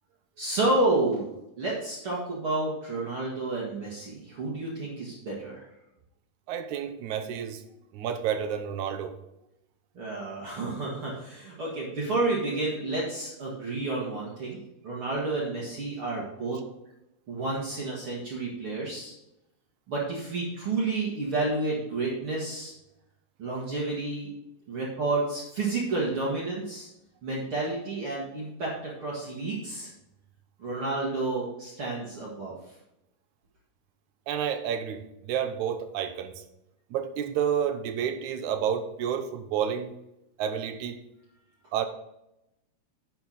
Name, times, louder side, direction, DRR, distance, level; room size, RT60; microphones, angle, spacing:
voice 1, 0.4-1.3 1.6-5.6 9.9-14.6 14.8-16.6 17.3-19.1 19.9-22.7 23.4-24.3 24.7-26.9 27.2-29.9 30.6-32.5, right 2 dB, 45° right, -5 dB, 2.4 m, -30 dB
voice 2, 6.5-7.6 7.9-9.1 34.3-36.3 36.9-39.9 40.4-41.0 41.7-41.9, right 8 dB, 70° right, 7 dB, 2.0 m, -30 dB
11.5 x 6.0 x 4.0 m, 0.87 s
omnidirectional pair, 3.9 m